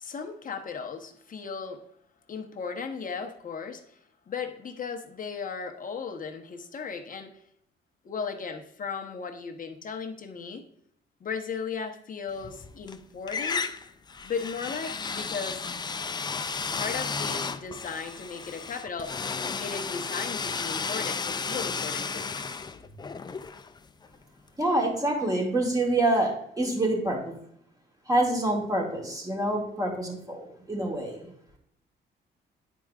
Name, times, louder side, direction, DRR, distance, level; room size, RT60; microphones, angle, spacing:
voice 1, 0.0-1.8 2.3-4.0 4.3-7.3 8.0-10.6 11.2-13.6 14.2-15.6 16.7-19.1 19.6-22.3, left 5 dB, 45° left, 4 dB, 1.0 m, -36 dB
sound 1, 12.4-13.0 13.3-24.1, left 5 dB, 20° left, 0.4 m, -33 dB
voice 2, 24.6-27.3 28.1-31.3, right 1 dB, 20° right, -2 dB, 2.3 m, -26 dB
10.5 x 4.6 x 2.4 m, 0.72 s
cardioid pair, 90°, 20 cm